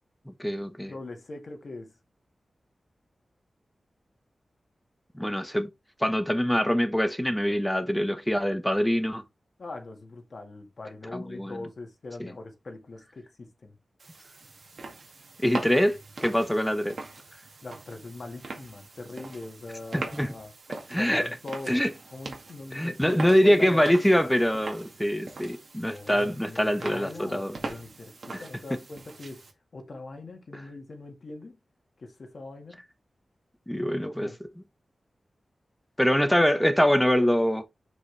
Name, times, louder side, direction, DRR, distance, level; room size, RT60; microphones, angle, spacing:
voice 1, 0.3-0.9 5.1-5.7 6.0-9.2 11.1-11.6 12.2-12.3 15.4-17.0 19.9-20.3 20.9-21.3 21.7-21.9 22.7-27.6 28.3-28.4 28.7-28.8 33.7-34.3 36.0-37.6, equal, 5° left, 0.9 m, -24 dB
voice 2, 0.9-1.9 9.6-13.7 17.6-20.5 20.9-21.8 22.1-24.3 25.8-29.4 29.7-31.6 32.0-32.8 33.7-34.4, left 2 dB, 55° left, 1.8 m, -41 dB
sound 1, 14.0-29.5, right 3 dB, 60° right, 2.0 m, -42 dB
6.5 x 5.2 x 3.3 m
wide cardioid pair, 120°, 0 cm